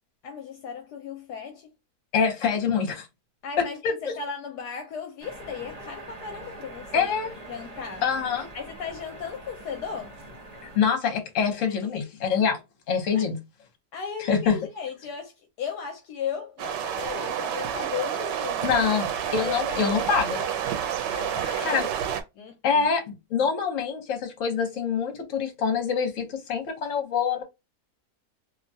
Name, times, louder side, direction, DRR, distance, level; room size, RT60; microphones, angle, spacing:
voice 1, 0.2-1.7 3.4-7.1 7.5-8.0 8.5-10.2 11.7-12.1 13.1-13.3 13.9-18.8 19.2-20.0 20.3-20.5 21.1-21.9 22.3-22.9, left 7 dB, 75° left, 1.1 m, -36 dB
voice 2, 2.1-3.1 3.6-4.1 6.9-7.4 8.0-8.5 10.6-12.6 12.9-13.4 14.3-14.6 18.6-20.4 21.6-21.9 22.6-27.4, left 6 dB, 55° left, 1.2 m, -25 dB
sound 1, 5.2-10.8, right 1 dB, 35° right, 0.6 m, -43 dB
sound 2, 16.6-22.2, right 9 dB, 90° right, 1.2 m, -29 dB
2.9 x 2.2 x 2.6 m
omnidirectional pair, 1.8 m